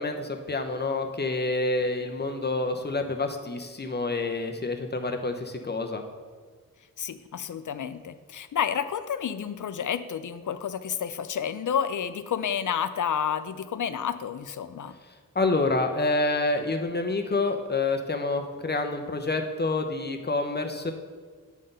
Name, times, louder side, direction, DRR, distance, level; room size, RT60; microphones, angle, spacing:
voice 1, 0.0-6.0 15.3-20.9, left 2 dB, 30° left, 5 dB, 0.8 m, -28 dB
voice 2, 7.0-14.9, left 8 dB, 60° left, 12 dB, 0.5 m, -30 dB
8.3 x 3.8 x 5.4 m, 1.5 s
wide cardioid pair, 60°, 34 cm